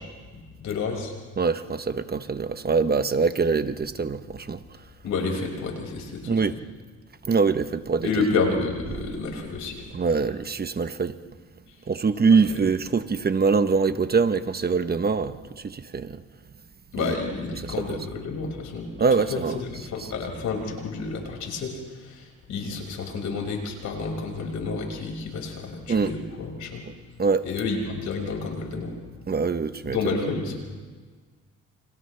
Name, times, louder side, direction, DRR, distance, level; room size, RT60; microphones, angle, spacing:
voice 1, 0.3-1.1 5.0-6.4 8.0-9.9 12.3-12.5 16.9-26.8 27.4-29.0 29.9-30.6, left 4 dB, 75° left, 5.9 m, -30 dB
voice 2, 1.4-4.6 6.3-6.5 7.3-8.1 9.9-11.2 11.9-16.2 17.0-17.1 17.6-17.7 19.0-19.6 20.0-20.1 25.9-26.1 27.2-27.4 29.3-30.0, right 5 dB, 30° right, 1.0 m, -23 dB
29.5 x 28.0 x 3.4 m
cardioid pair, 90°, 30 cm